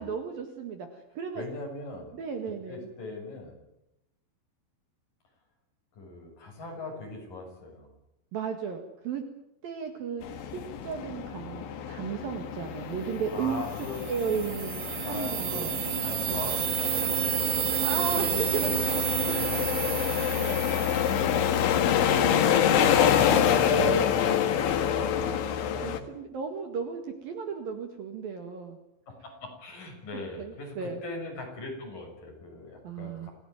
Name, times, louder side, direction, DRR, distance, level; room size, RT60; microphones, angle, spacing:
voice 1, 0.0-1.5 2.1-2.9 8.3-9.2 9.6-13.6 14.1-15.8 16.3-16.5 17.8-19.0 20.3-20.7 23.2-23.6 24.9-25.3 25.8-28.8 30.1-31.0 32.8-33.3, right 6 dB, 55° right, 6 dB, 3.1 m, -35 dB
voice 2, 1.3-2.1 2.7-3.6 6.0-7.9 13.3-14.0 15.0-15.7 16.0-18.8 19.2-20.0 20.7-21.4 29.1-33.3, left 3 dB, 45° left, 2 dB, 7.9 m, -40 dB
sound 1, 10.2-26.0, left 9 dB, 80° left, 4.1 m, -27 dB
sound 2, 13.7-21.7, right 15 dB, 85° right, 3.7 m, -31 dB
27.0 x 16.5 x 9.4 m, 0.87 s
omnidirectional pair, 5.5 m